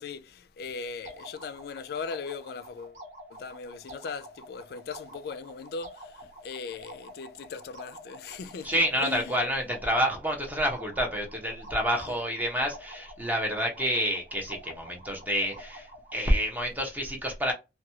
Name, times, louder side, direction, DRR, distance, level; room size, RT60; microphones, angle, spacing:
voice 1, 0.0-3.0 3.3-9.4 12.1-12.2, left 5 dB, 60° left, 0.3 m, -39 dB
sound 1, 1.1-16.4, equal, 40° right, 0.9 m, -48 dB
voice 2, 8.6-15.9 16.1-17.5, equal, 10° right, 0.7 m, -28 dB
2.9 x 2.2 x 2.7 m
head